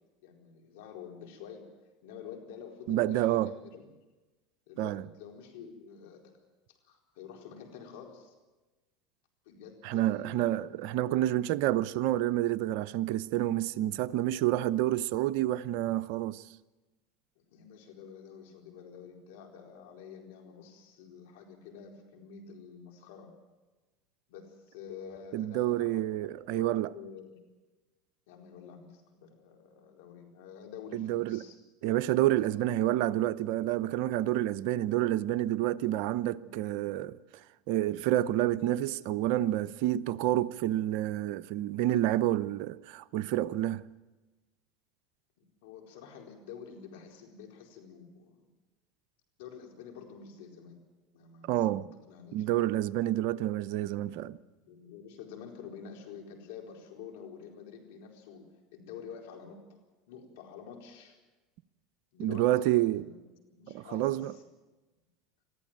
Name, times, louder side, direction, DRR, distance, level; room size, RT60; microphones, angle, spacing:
voice 1, 0.2-1.6 2.0-3.9 4.7-6.3 6.7-8.3 9.5-10.5 10.8-10.9 17.5-23.3 24.3-27.4 28.3-31.6 32.4-33.1 36.4-36.5 45.4-48.5 49.4-50.8 51.1-52.4 53.9-54.3 54.6-58.4 58.7-59.8 60.1-61.2 62.1-63.2 63.5-64.4, left 7 dB, 75° left, 4.3 m, -48 dB
voice 2, 2.9-3.5 4.8-5.0 9.8-16.4 25.3-26.9 30.9-31.4 31.8-37.2 37.7-43.8 51.5-51.9 52.3-54.4 62.2-63.0 63.7-64.3, right 14 dB, 65° right, 0.7 m, -29 dB
22.5 x 14.5 x 9.1 m
hypercardioid pair, 95°, 0 cm